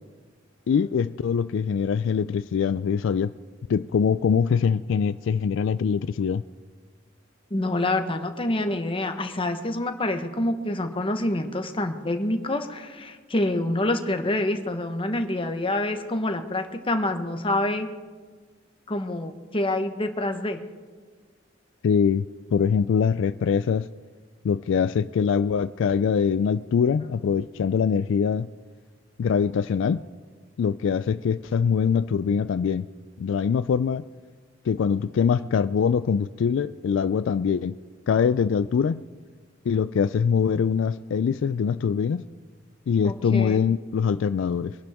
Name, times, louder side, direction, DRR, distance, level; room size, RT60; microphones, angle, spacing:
voice 1, 0.7-3.3 3.7-6.4 21.8-22.2 22.5-23.9 24.4-28.5 29.2-30.0 30.6-32.9 33.2-34.0 34.7-37.8 38.1-39.0 39.7-42.2 42.9-44.8, left 6 dB, 70° left, 14 dB, 0.3 m, -23 dB
voice 2, 7.5-17.9 18.9-20.6 43.0-43.7, left 1 dB, 30° left, 6 dB, 1.1 m, -27 dB
24.0 x 11.5 x 3.6 m, 1.5 s
head